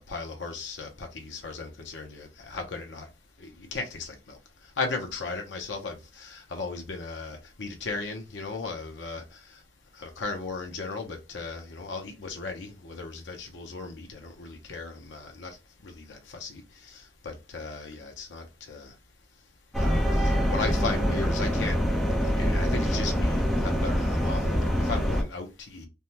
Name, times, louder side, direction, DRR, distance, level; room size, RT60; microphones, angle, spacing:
voice 1, 0.0-3.1 3.4-9.6 9.9-15.6 15.8-18.9 19.8-21.8 22.2-25.9, left 3 dB, 85° left, 0.7 m, -36 dB
sound 1, 19.7-25.2, equal, ahead, 0.6 m, -25 dB
3.4 x 2.1 x 2.8 m
head